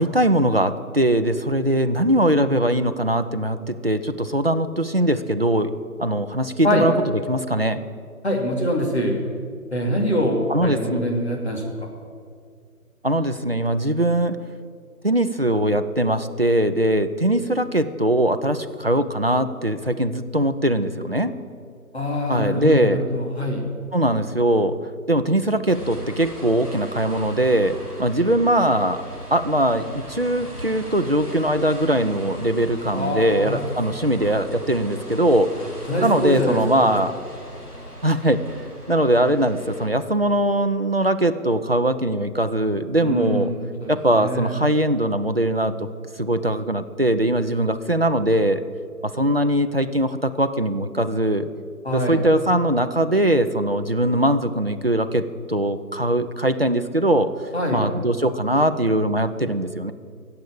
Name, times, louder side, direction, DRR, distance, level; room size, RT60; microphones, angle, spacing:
voice 1, 0.0-5.7 6.0-6.9 7.3-7.8 10.5-11.1 13.0-14.4 15.0-21.3 22.3-23.0 23.9-24.8 25.1-29.0 29.3-35.5 36.0-37.1 38.0-38.4 38.9-43.5 43.9-45.9 46.2-48.6 49.0-51.5 51.9-57.3 57.7-59.9, right 1 dB, 40° right, 9 dB, 0.6 m, -21 dB
voice 2, 8.2-9.1 9.7-11.6 21.9-23.6 32.9-33.6 35.9-36.6 43.0-44.6 51.8-52.2 57.5-57.8, equal, 45° left, -1 dB, 2.8 m, -24 dB
sound 1, 25.7-39.9, equal, 90° left, 4.4 m, -38 dB
14.0 x 8.0 x 8.5 m, 2.1 s
figure-of-eight pair, 165°, 45 cm